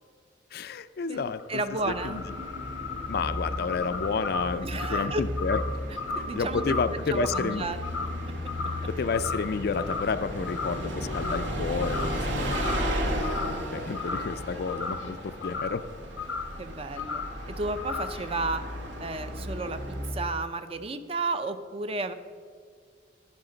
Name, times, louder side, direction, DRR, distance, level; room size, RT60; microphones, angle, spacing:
voice 1, 0.5-1.6 1.9-2.2 3.1-5.6 6.3-7.6 9.0-15.8, left 5 dB, 55° left, 12 dB, 0.4 m, -31 dB
voice 2, 1.0-2.2 4.6-5.2 6.3-7.8 16.6-18.6 19.0-19.8 20.1-22.1, right 3 dB, 30° right, 10 dB, 0.5 m, -32 dB
sound 1, 1.4-8.9 9.1-9.5 9.8-10.9 11.1-11.5 11.8-12.2 12.5-13.6 13.9-15.8 16.2-16.5 17.0-17.3 17.8-18.2, left 4 dB, 90° left, 0.7 m, -35 dB
Bus, 1.8-20.4, equal, 80° right, 1.4 m, -34 dB
11.0 x 10.5 x 3.9 m, 2.1 s
head